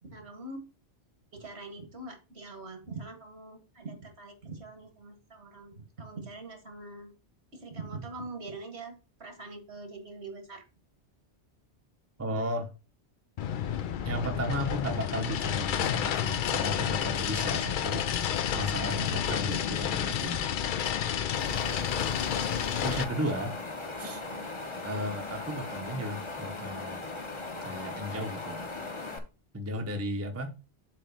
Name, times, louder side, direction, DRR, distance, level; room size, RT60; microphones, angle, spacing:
voice 1, 0.0-0.6 1.3-7.1 7.5-8.9 9.2-10.6 28.0-28.1, right 3 dB, 70° right, 1.8 m, -43 dB
voice 2, 12.2-12.7 14.0-18.1 18.5-20.4 22.8-23.5 24.0-24.2 24.8-27.0 27.6-28.6 29.5-30.5, equal, 15° right, 0.8 m, -34 dB
sound 1, 13.4-23.0, left 9 dB, 55° left, 0.6 m, -30 dB
Wind, 21.4-29.2, left 2 dB, 30° left, 0.9 m, -38 dB
7.6 x 3.1 x 5.7 m
omnidirectional pair, 1.2 m